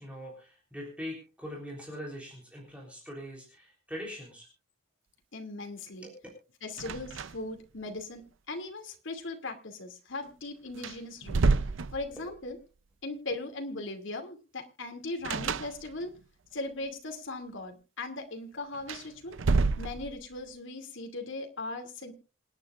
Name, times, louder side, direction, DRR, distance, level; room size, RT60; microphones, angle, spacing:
voice 1, 0.0-4.5 6.0-6.2 6.8-6.9 12.1-12.5, equal, 5° right, -2 dB, 3.5 m, -42 dB
voice 2, 5.3-6.1 6.6-11.4 11.9-12.6 13.0-16.2 16.5-19.4 19.8-22.1, left 2 dB, 70° left, 4 dB, 2.5 m, -39 dB
sound 1, 6.8-7.6 7.9-8.0 10.2-10.3 10.7-12.5 15.2-16.2 18.7-20.4, right 4 dB, 75° right, 0.6 m, -29 dB
27.5 x 9.7 x 2.5 m, 0.33 s
head